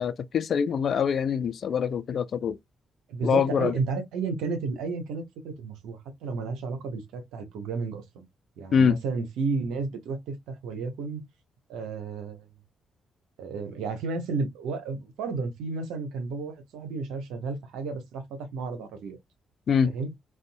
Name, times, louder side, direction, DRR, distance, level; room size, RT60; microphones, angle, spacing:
voice 1, 0.0-2.6 3.2-3.8 8.7-9.0 19.7-19.9, left 7 dB, 55° left, 0.3 m, -24 dB
voice 2, 3.1-8.3 8.6-11.2 11.7-12.5 13.4-18.2 18.5-19.2 19.8-20.1, right 4 dB, 70° right, 0.7 m, -32 dB
2.6 x 2.2 x 2.5 m
hypercardioid pair, 45°, 0 cm